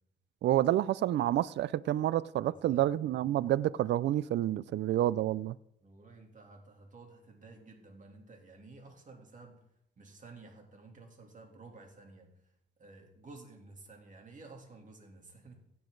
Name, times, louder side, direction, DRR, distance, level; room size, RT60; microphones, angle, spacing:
voice 1, 0.4-5.6, right 13 dB, 60° right, 0.4 m, -29 dB
voice 2, 2.4-2.9 5.8-9.6 10.0-12.5 12.8-15.6, right 3 dB, 40° right, 3.0 m, -53 dB
16.5 x 7.0 x 3.9 m
cardioid pair, 90°, 20 cm